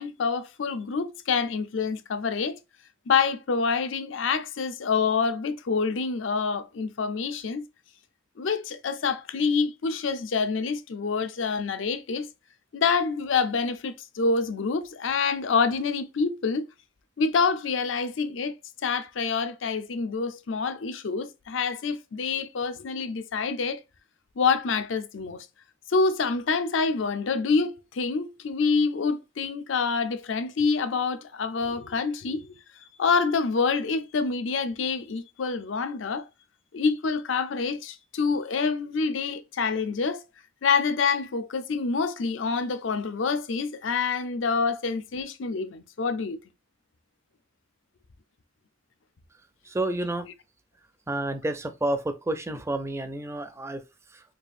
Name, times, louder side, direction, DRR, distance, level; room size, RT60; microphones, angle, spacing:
voice 1, 0.0-2.6 3.1-7.6 8.4-12.3 12.7-16.7 17.2-18.5 18.8-23.8 24.4-25.5 25.9-32.6 33.0-36.3 36.7-40.2 40.6-46.4, left 5 dB, 75° left, 0.5 m, -27 dB
voice 2, 49.7-50.3 51.1-53.8 54.1-54.2, right 1 dB, 15° right, 0.4 m, -30 dB
4.9 x 2.4 x 2.5 m
head